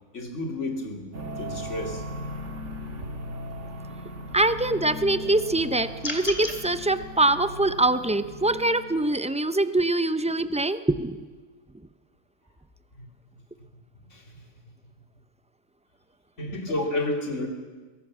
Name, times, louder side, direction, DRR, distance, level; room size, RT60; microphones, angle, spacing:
voice 1, 0.1-1.0 1.4-2.0 13.0-13.1 14.1-14.4 16.4-17.5, left 2 dB, 80° left, 2 dB, 3.2 m, -31 dB
sound 1, 1.1-9.4, equal, 80° right, 2.0 m, -38 dB
voice 2, 4.3-11.3, right 2 dB, 10° right, 12 dB, 0.4 m, -24 dB
sound 2, 6.0-6.6, left 1 dB, 30° left, 2.5 m, -31 dB
23.5 x 16.5 x 7.4 m, 1.4 s
omnidirectional pair, 1.2 m